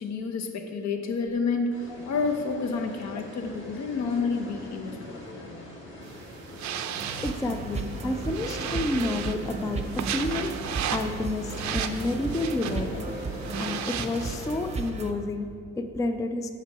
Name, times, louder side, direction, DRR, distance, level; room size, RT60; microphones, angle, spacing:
voice 1, 0.0-5.6, left 4 dB, 65° left, 5 dB, 0.8 m, -30 dB
sound 1, 1.7-14.6, left 1 dB, 40° left, 1.4 m, -43 dB
sound 2, 6.0-14.9, right 9 dB, 65° right, 0.5 m, -36 dB
sound 3, 7.0-15.1, right 3 dB, 20° right, 0.7 m, -35 dB
voice 2, 7.2-13.0 13.6-16.5, left 2 dB, 10° left, 8 dB, 0.3 m, -30 dB
5.9 x 5.8 x 4.7 m, 2.4 s
cardioid pair, 90°, 30 cm